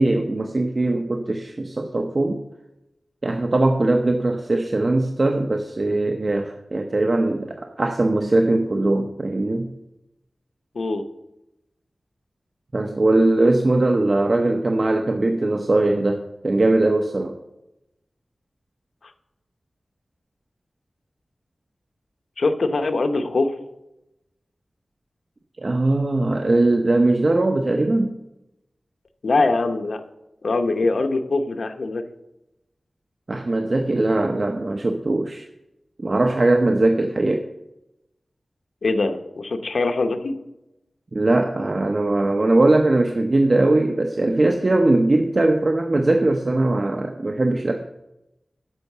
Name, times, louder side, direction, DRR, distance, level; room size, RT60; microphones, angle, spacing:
voice 1, 0.0-2.4 3.2-9.7 12.7-17.4 25.6-28.2 33.3-35.5 36.0-37.4 41.1-47.8, right 2 dB, 45° right, 4 dB, 0.8 m, -20 dB
voice 2, 22.4-23.5 29.2-30.0 30.4-32.0 38.8-40.3, left 3 dB, 80° left, 7 dB, 0.9 m, -22 dB
12.0 x 5.6 x 6.7 m, 0.92 s
wide cardioid pair, 85°, 0 cm